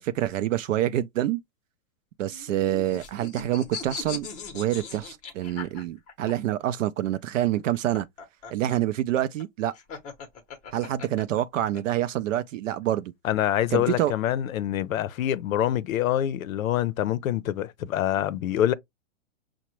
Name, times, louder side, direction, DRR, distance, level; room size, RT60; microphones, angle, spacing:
voice 1, 0.0-1.4 2.2-4.3 4.5-8.1 8.5-9.7 10.7-13.1 13.7-14.1, right 13 dB, 70° right, 0.5 m, -27 dB
sound 1, 2.3-6.3 7.6-11.8, left 5 dB, 20° left, 0.7 m, -39 dB
voice 2, 13.2-18.7, left 11 dB, 85° left, 0.6 m, -25 dB
5.7 x 2.1 x 2.9 m
hypercardioid pair, 140°, 40 cm